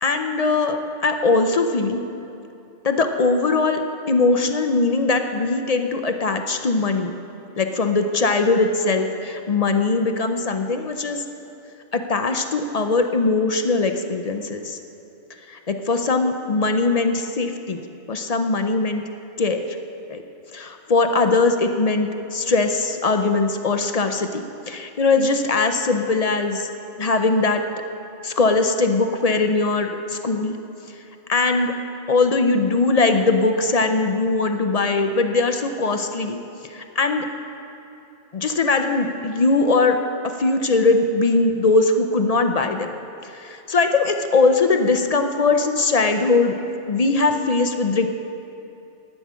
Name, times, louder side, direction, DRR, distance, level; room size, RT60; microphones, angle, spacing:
voice 1, 0.0-2.0 2.8-7.1 7.6-11.2 11.9-14.8 15.5-19.0 19.4-19.7 20.1-20.2 20.5-26.7 27.0-27.6 28.2-30.6 31.3-31.7 32.1-37.3 38.3-40.0 40.2-42.9 43.2-46.6 46.9-48.1, left 3 dB, 45° left, 6 dB, 0.5 m, -21 dB
11.5 x 9.7 x 6.1 m, 2.8 s
omnidirectional pair, 1.2 m